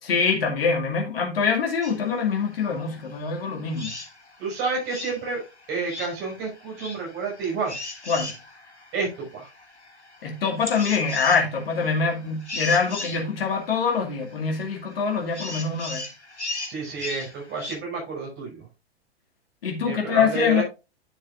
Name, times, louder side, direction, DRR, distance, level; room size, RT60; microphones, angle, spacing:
voice 1, 0.0-3.9 8.1-8.3 10.2-16.0 19.6-20.6, left 5 dB, 60° left, 2.3 m, -24 dB
sound 1, 1.8-17.7, left 2 dB, 90° left, 1.9 m, -39 dB
voice 2, 4.4-5.4 5.7-7.8 8.9-9.5 16.7-18.7 19.9-20.6, right 4 dB, 30° right, 5.9 m, -30 dB
10.0 x 7.3 x 2.5 m
figure-of-eight pair, 105°, 33 cm